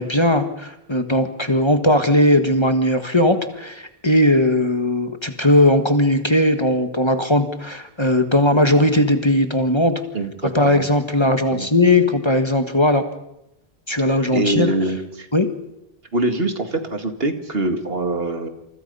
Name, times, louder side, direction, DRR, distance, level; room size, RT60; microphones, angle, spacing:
voice 1, 0.0-10.0 10.5-13.0 13.9-14.7 15.3-15.5, left 1 dB, 25° left, 7 dB, 1.6 m, -18 dB
voice 2, 10.1-10.8 11.5-11.7 14.3-15.3 16.1-18.5, right 2 dB, 65° right, 7 dB, 2.4 m, -24 dB
28.5 x 28.0 x 5.6 m, 0.86 s
omnidirectional pair, 1.1 m